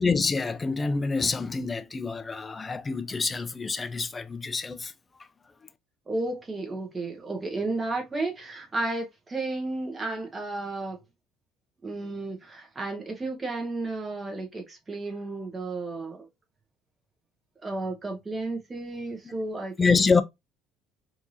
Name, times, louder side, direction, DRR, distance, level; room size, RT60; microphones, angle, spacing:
voice 1, 0.0-4.9 19.2-19.3 19.8-20.2, left 4 dB, 25° left, 0.6 m, -26 dB
voice 2, 6.1-11.0 11.8-16.3 17.6-20.1, right 2 dB, 25° right, 1.3 m, -33 dB
4.5 x 2.8 x 2.7 m
hypercardioid pair, 65°, 0 cm